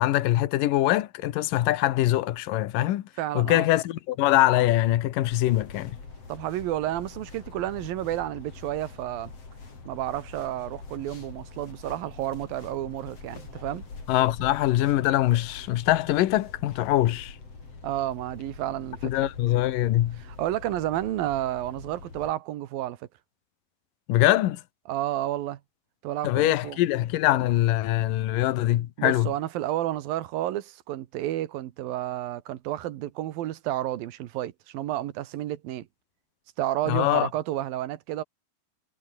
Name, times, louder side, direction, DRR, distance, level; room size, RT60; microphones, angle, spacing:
voice 1, 0.0-3.0 3.3-6.0 14.1-17.4 19.0-20.2 24.1-24.6 26.2-29.3 36.9-37.3, left 15 dB, 75° left, 2.7 m, -23 dB
voice 2, 3.2-3.7 6.3-9.3 9.9-13.8 17.8-19.1 20.2-23.1 24.9-25.6 26.0-26.8 29.0-35.9 36.6-38.2, right 13 dB, 85° right, 3.0 m, -31 dB
sound 1, 5.3-22.3, left 4 dB, 45° left, 6.0 m, -44 dB
omnidirectional pair, 4.1 m